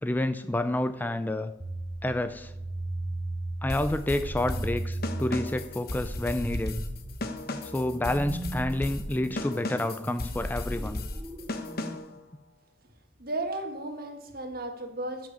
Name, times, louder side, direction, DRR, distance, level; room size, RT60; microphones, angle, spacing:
voice 1, 0.0-1.5 2.0-2.5 3.6-6.8 7.7-11.0, left 1 dB, 10° left, 10 dB, 0.4 m, -29 dB
sound 1, 1.6-12.0, right 2 dB, 20° right, 1.0 m, -38 dB
sound 2, 3.7-12.2, left 2 dB, 55° left, 1.1 m, -35 dB
voice 2, 13.2-15.3, right 2 dB, 55° right, 5 dB, 1.7 m, -34 dB
12.5 x 6.0 x 7.0 m, 0.91 s
head